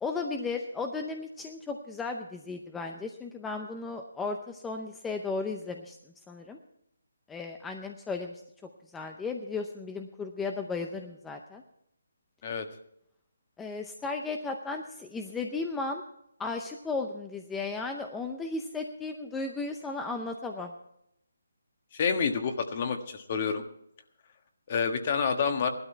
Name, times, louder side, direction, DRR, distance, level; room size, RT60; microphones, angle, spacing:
voice 1, 0.0-6.0 6.3-6.6 7.3-8.4 8.9-11.6 13.6-16.0 16.4-20.7, left 3 dB, 5° left, 4 dB, 0.6 m, -35 dB
voice 2, 21.9-23.6 24.7-25.7, left 6 dB, 35° left, 7 dB, 1.4 m, -28 dB
16.0 x 12.5 x 4.5 m, 0.76 s
hypercardioid pair, 165°, 0 cm